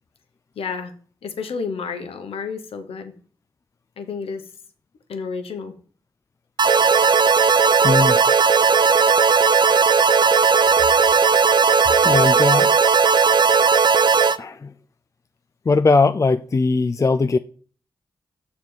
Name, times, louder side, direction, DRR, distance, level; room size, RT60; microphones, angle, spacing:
voice 1, 0.6-0.9 1.2-3.1 4.0-4.4 5.1-5.7, left 5 dB, 80° left, 1.0 m, -30 dB
sound 1, 6.6-14.4, right 5 dB, 50° right, 0.5 m, -16 dB
voice 2, 7.8-8.2 12.0-12.7 14.4-14.7 15.7-17.4, left 3 dB, 35° left, 0.4 m, -19 dB
6.9 x 4.1 x 6.3 m
supercardioid pair, 45°, 10 cm